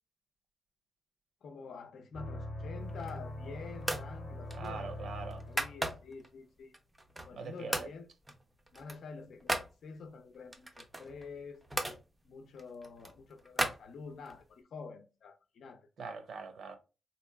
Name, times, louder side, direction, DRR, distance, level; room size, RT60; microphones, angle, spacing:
voice 1, 1.4-4.9 5.5-6.7 7.3-8.1 8.7-11.6 12.2-15.9, left 4 dB, 65° left, 0.6 m, -48 dB
sound 1, 2.1-6.0, left 1 dB, 30° left, 0.8 m, -42 dB
sound 2, 2.8-3.4 3.8-4.1 4.5-6.3 6.7-7.4 7.7-8.0 8.3-9.7 10.5-12.0 12.5-14.4, right 1 dB, 10° right, 0.4 m, -37 dB
voice 2, 4.5-5.4 7.3-7.9 16.0-16.8, right 4 dB, 60° right, 0.6 m, -42 dB
3.9 x 2.8 x 2.2 m
wide cardioid pair, 160°, 0 cm